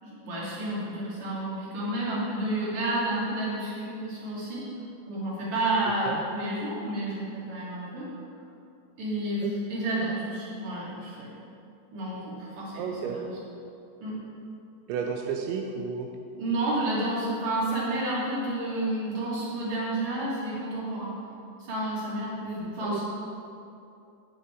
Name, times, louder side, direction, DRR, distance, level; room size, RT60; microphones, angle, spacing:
voice 1, 0.0-4.6 5.1-8.1 9.0-11.3 11.9-13.3 14.0-14.2 16.4-21.2 21.6-23.0, right 1 dB, 45° right, -7 dB, 3.9 m, -30 dB
voice 2, 12.8-13.2 14.9-16.1 22.8-23.0, right 6 dB, 85° right, 2 dB, 3.0 m, -32 dB
18.5 x 6.6 x 4.8 m, 2.6 s
omnidirectional pair, 5.2 m